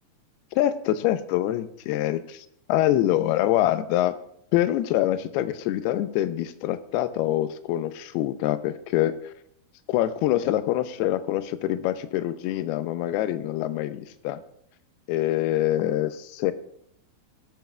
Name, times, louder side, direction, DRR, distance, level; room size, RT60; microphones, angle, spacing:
voice 1, 0.5-4.1 4.5-9.2 9.9-14.4 15.1-16.5, left 13 dB, 90° left, 12 dB, 2.6 m, -25 dB
19.5 x 9.2 x 2.2 m, 0.71 s
omnidirectional pair, 4.5 m